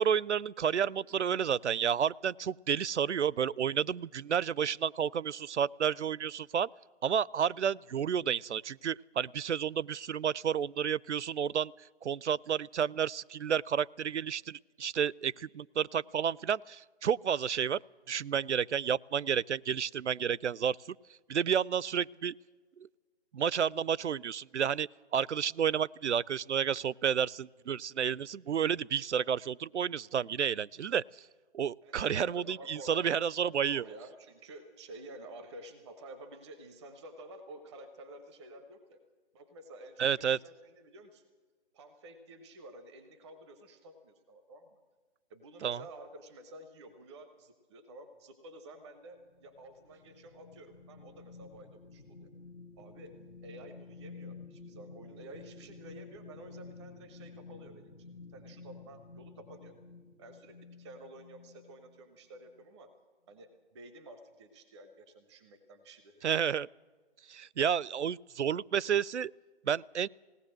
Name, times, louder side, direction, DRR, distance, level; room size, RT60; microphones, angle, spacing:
voice 1, 0.0-6.7 7.0-11.7 12.0-17.8 18.1-21.0 21.3-22.3 22.8-22.9 23.3-31.0 31.5-33.8 40.0-40.4 45.6-45.8 66.2-66.7 67.3-69.3 69.6-70.1, right 8 dB, 85° right, 25 dB, 0.5 m, -31 dB
voice 2, 31.8-33.1 33.4-39.0 39.3-41.2 41.7-44.8 45.3-52.3 52.8-53.2 53.4-59.8 60.2-62.9 63.3-66.3, right 1 dB, ahead, 8 dB, 0.5 m, -51 dB
sound 1, 49.1-62.0 62.5-62.6, left 4 dB, 80° left, 1.9 m, -51 dB
20.0 x 17.5 x 7.7 m, 1.5 s
figure-of-eight pair, 150°, 34 cm